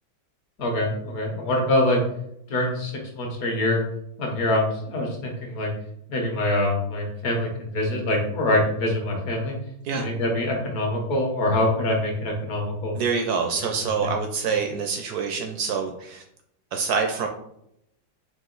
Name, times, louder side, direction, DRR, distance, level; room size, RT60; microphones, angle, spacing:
voice 1, 0.6-2.0 2.5-3.8 4.2-5.7 6.1-9.6 9.9-12.9 14.0-14.1, left 1 dB, 55° left, 1 dB, 1.2 m, -24 dB
voice 2, 12.9-16.2 16.7-17.3, right 5 dB, 75° right, 3 dB, 0.8 m, -26 dB
4.7 x 2.5 x 3.8 m, 0.76 s
omnidirectional pair, 2.1 m